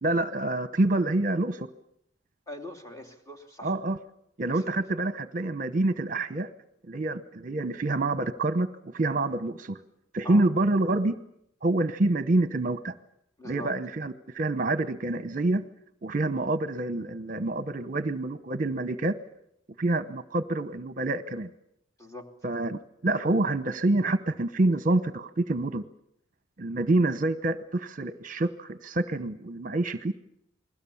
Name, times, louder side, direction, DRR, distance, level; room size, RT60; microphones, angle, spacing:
voice 1, 0.0-1.7 3.6-4.0 4.4-6.5 6.9-9.8 10.1-11.1 11.6-12.9 13.4-15.6 16.0-19.2 19.8-21.5 22.4-25.8 26.6-30.1, right 2 dB, 45° right, 13 dB, 0.9 m, -27 dB
voice 2, 2.5-3.8 4.5-4.6 10.2-10.4 13.4-13.7 22.0-22.3, left 1 dB, 15° left, 4 dB, 3.0 m, -42 dB
29.0 x 21.0 x 7.1 m, 0.73 s
head